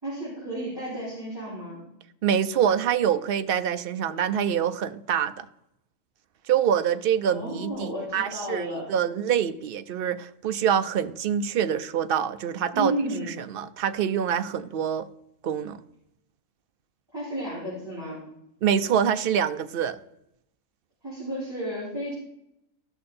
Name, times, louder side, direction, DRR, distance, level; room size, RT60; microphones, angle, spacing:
voice 1, 0.0-1.8 7.3-8.9 12.7-13.3 17.1-18.2 21.0-22.1, right 1 dB, 15° right, 4.5 m, -32 dB
voice 2, 2.2-5.5 6.5-12.9 13.3-15.1 15.4-15.8 18.6-20.0, right 8 dB, 60° right, 0.6 m, -25 dB
15.5 x 6.4 x 4.2 m
omnidirectional pair, 1.4 m